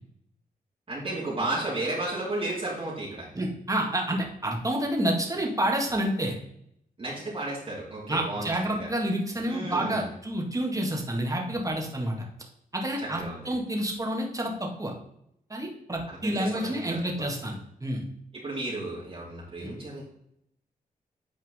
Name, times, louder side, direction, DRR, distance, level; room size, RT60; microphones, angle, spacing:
voice 1, 0.9-3.3 7.0-8.9 9.5-10.1 13.0-13.5 16.1-17.0 18.3-20.0, right 2 dB, 40° right, -6 dB, 2.6 m, -33 dB
voice 2, 3.3-6.4 8.1-12.2 12.7-14.9 15.5-18.0 19.6-19.7, right 1 dB, 20° right, 0 dB, 2.1 m, -29 dB
9.3 x 4.5 x 3.7 m, 0.73 s
cardioid pair, 70°, 15 cm